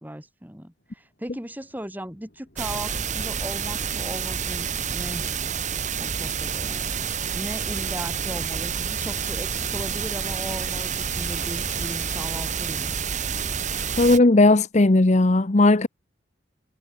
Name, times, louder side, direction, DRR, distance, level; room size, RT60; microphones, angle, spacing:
voice 1, 0.0-5.3 6.0-7.0 7.3-12.9, equal, 10° right, 4.0 m, -37 dB
sound 1, 0.8-12.3, left 3 dB, 55° left, 7.4 m, -50 dB
sound 2, 2.6-14.2, right 7 dB, 40° right, 1.8 m, -29 dB
voice 2, 14.0-15.9, left 2 dB, 35° left, 0.8 m, -16 dB
head